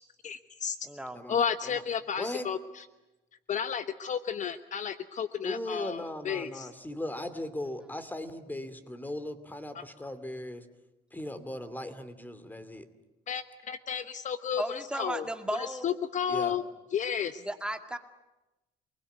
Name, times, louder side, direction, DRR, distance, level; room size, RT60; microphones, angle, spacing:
voice 1, 0.2-0.7 1.3-2.6 3.5-6.0 6.3-6.7 13.3-14.6 15.0-15.2 15.8-16.6 16.9-17.4, left 7 dB, 45° left, 12 dB, 1.1 m, -32 dB
voice 2, 0.8-1.2 14.6-15.9 17.4-18.0, right 1 dB, 5° right, 6 dB, 2.1 m, -35 dB
voice 3, 2.2-2.5 5.4-10.7 11.1-12.9 16.3-16.6, left 1 dB, 10° left, 12 dB, 2.6 m, -38 dB
28.5 x 21.0 x 9.4 m, 1.0 s
cardioid pair, 110°, 17 cm